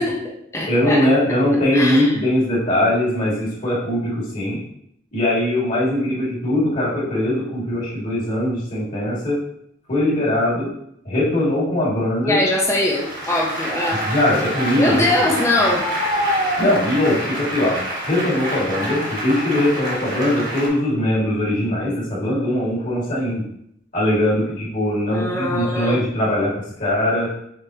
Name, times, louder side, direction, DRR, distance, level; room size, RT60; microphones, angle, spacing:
voice 1, 0.0-1.0 1.7-2.1 12.2-14.0 14.8-15.8 25.1-26.0, left 1 dB, 15° left, -1 dB, 0.6 m, -21 dB
voice 2, 0.7-4.6 5.1-9.4 9.9-10.7 11.0-12.4 14.0-15.3 16.6-23.5 23.9-27.3, left 1 dB, 40° left, -7 dB, 1.9 m, -21 dB
Applause, 12.8-20.7, equal, 45° right, 1.3 m, -26 dB
5.4 x 3.5 x 2.7 m, 0.73 s
head